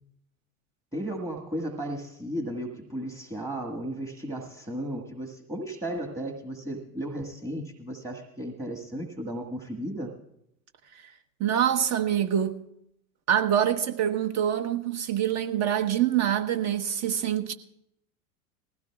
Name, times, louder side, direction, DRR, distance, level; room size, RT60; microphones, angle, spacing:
voice 1, 0.9-10.1, right 1 dB, 10° right, 1.6 m, -34 dB
voice 2, 11.4-12.6 13.3-17.5, right 10 dB, 35° right, 1.2 m, -25 dB
20.0 x 16.0 x 2.4 m
hypercardioid pair, 95°, 46 cm